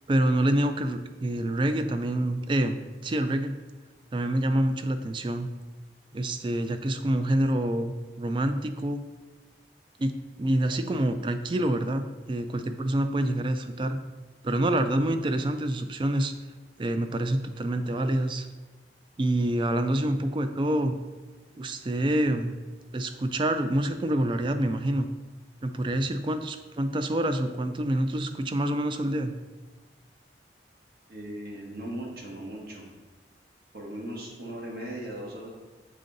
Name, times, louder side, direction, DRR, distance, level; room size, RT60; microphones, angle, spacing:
voice 1, 0.1-3.6 4.1-5.5 6.1-9.0 10.0-14.0 14.4-16.3 16.8-18.5 19.2-21.0 21.5-22.5 22.9-25.1 25.6-29.3, right 1 dB, 30° right, 9 dB, 0.3 m, -27 dB
voice 2, 31.1-32.8 33.7-35.5, right 1 dB, 55° right, -2 dB, 1.3 m, -38 dB
6.6 x 3.7 x 3.9 m, 1.2 s
head